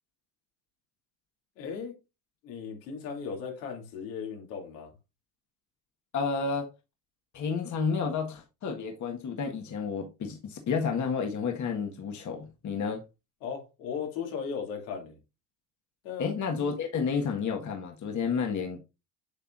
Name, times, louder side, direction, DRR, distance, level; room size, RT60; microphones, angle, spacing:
voice 1, 1.6-2.0 2.4-4.9 13.4-15.2 16.0-16.3, left 6 dB, 80° left, 2.6 m, -37 dB
voice 2, 6.1-6.7 7.3-13.0 16.2-18.8, left 5 dB, 35° left, 1.5 m, -31 dB
8.2 x 5.5 x 2.5 m
hypercardioid pair, 80°, 48 cm